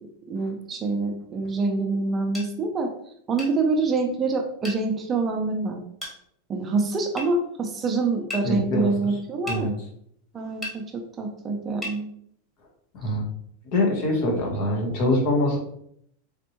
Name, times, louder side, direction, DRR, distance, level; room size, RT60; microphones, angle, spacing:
voice 1, 0.3-2.9 3.3-5.8 6.5-9.8 10.3-12.1, right 3 dB, 25° right, 4 dB, 0.6 m, -26 dB
sound 1, 2.3-2.5 3.4-3.6 4.6-4.8 6.0-6.2 7.2-7.3 8.3-8.5 9.5-9.6 10.6-10.8 11.8-12.0, left 1 dB, 10° left, 1.6 m, -34 dB
voice 2, 8.4-8.9 9.5-9.7 12.9-13.3 13.6-15.6, left 1 dB, 55° left, 0 dB, 1.5 m, -24 dB
4.3 x 3.2 x 3.0 m, 0.69 s
supercardioid pair, 125°, 0 cm